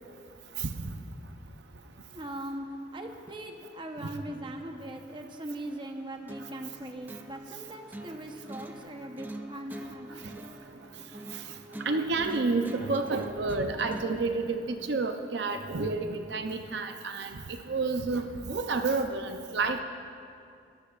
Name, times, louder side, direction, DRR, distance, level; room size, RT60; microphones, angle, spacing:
voice 1, 0.6-0.9 4.0-4.1 11.3-11.4 11.8-19.8, right 3 dB, 70° right, 6 dB, 0.6 m, -30 dB
voice 2, 2.1-2.7 2.9-10.2, right 1 dB, 25° right, 3 dB, 0.8 m, -40 dB
sound 1, 6.3-14.3, right 1 dB, 10° right, 0.4 m, -44 dB
21.5 x 13.5 x 2.4 m, 2.4 s
head